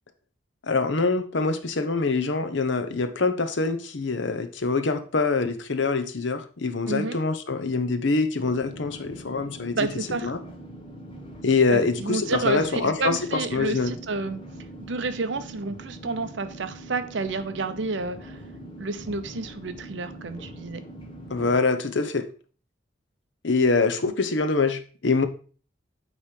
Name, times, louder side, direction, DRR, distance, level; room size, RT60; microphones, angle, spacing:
voice 1, 0.6-9.9 10.2-10.4 11.4-13.9 21.3-22.3 23.4-25.3, left 4 dB, 65° left, 9 dB, 0.8 m, -24 dB
voice 2, 6.9-7.2 9.7-10.3 11.7-14.4 14.9-18.3 18.8-20.8, right 3 dB, 65° right, 10 dB, 0.7 m, -30 dB
sound 1, 8.4-21.6, right 1 dB, 25° left, 1.1 m, -42 dB
8.5 x 3.2 x 5.0 m, 0.40 s
head